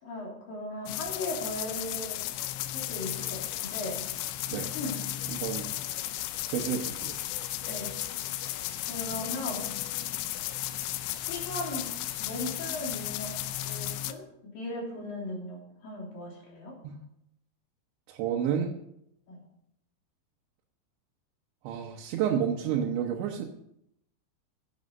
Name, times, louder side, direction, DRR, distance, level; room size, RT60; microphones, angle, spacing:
voice 1, 0.0-2.3 2.7-4.1 4.5-5.0 7.7-7.9 8.8-9.7 11.3-11.9 12.2-16.8 19.3-19.4, left 1 dB, 50° left, -3 dB, 4.4 m, -38 dB
sound 1, 0.9-14.1, left 14 dB, 80° left, 2.9 m, -35 dB
sound 2, 2.8-13.8, left 1 dB, 20° left, 5.2 m, -52 dB
voice 2, 5.3-5.7 6.5-7.2 16.8-17.0 18.1-18.8 21.6-23.4, right 8 dB, 80° right, 1 dB, 3.3 m, -30 dB
15.5 x 9.5 x 5.3 m, 0.78 s
omnidirectional pair, 5.3 m